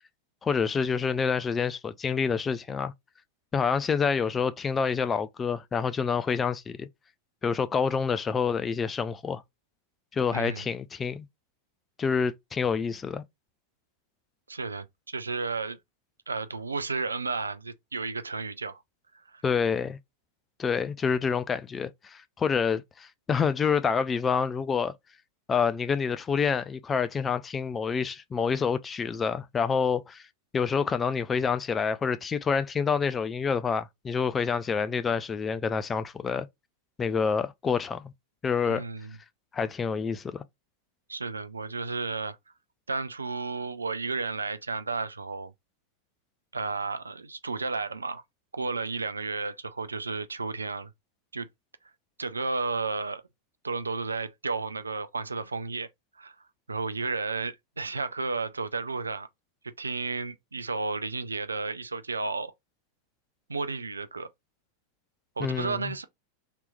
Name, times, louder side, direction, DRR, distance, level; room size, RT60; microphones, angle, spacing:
voice 1, 0.4-2.9 3.5-6.9 7.4-9.4 10.1-11.3 12.0-13.2 19.4-20.0 20.6-24.9 25.5-30.2 30.5-36.5 37.0-38.1 38.4-38.8 39.5-40.4 65.4-65.9, left 6 dB, 20° left, 0.4 m, -27 dB
voice 2, 10.3-10.6 14.5-15.8 16.3-18.8 19.3-19.4 38.7-39.2 41.1-42.4 42.9-45.5 46.5-48.2 48.5-50.9 51.3-51.5 52.2-53.2 53.6-55.9 56.2-56.4 56.7-59.3 59.8-62.5 63.5-64.3 65.4-66.0, right 4 dB, 75° right, 0.4 m, -32 dB
3.3 x 2.9 x 2.2 m
figure-of-eight pair, 90°, 0 cm